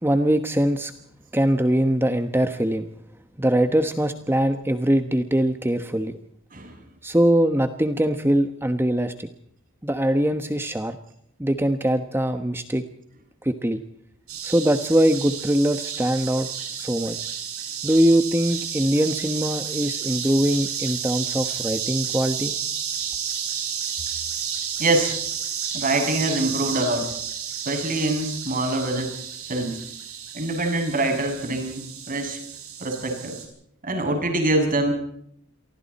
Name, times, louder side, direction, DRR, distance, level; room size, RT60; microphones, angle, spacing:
voice 1, 0.0-0.9 1.3-2.9 3.4-6.2 7.0-9.3 9.8-11.0 11.4-12.8 13.4-13.8 14.4-16.5 16.7-17.2 17.8-22.5, right 1 dB, 10° right, 8 dB, 1.2 m, -22 dB
sound 1, 14.3-33.4, right 8 dB, 80° right, 7.5 m, -31 dB
voice 2, 24.8-25.1 25.7-27.1 27.7-29.2 29.5-29.8 30.3-32.4 32.8-33.4 33.8-34.9, right 2 dB, 40° right, 5 dB, 7.2 m, -24 dB
29.0 x 24.0 x 4.3 m, 0.70 s
head